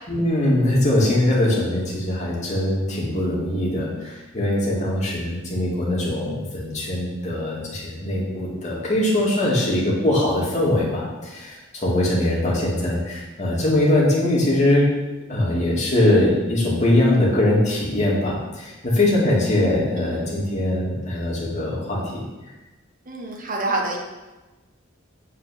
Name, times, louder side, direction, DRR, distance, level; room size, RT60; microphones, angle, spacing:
voice 1, 0.1-14.8 15.3-22.2, left 1 dB, 35° left, -5 dB, 2.6 m, -21 dB
voice 2, 23.1-24.0, right 2 dB, 40° right, 0 dB, 1.5 m, -27 dB
8.5 x 5.0 x 5.9 m, 1.1 s
head